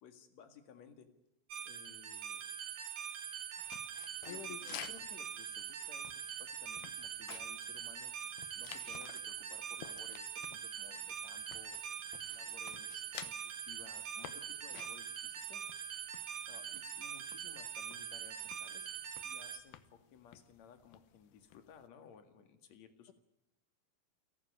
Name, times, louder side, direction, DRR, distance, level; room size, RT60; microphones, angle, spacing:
voice 1, 0.0-1.1 1.7-2.4 4.2-6.1 6.4-8.1 8.5-11.8 12.3-15.7 16.5-18.9 19.2-23.1, left 7 dB, 55° left, 8 dB, 3.0 m, -58 dB
sound 1, 1.5-19.6, right 8 dB, 70° right, 3.3 m, -43 dB
sound 2, 3.6-21.9, left 12 dB, 90° left, 2.9 m, -55 dB
voice 2, 4.3-4.8, left 10 dB, 70° left, 12 dB, 2.5 m, -49 dB
29.0 x 12.0 x 9.7 m, 0.92 s
omnidirectional pair, 4.1 m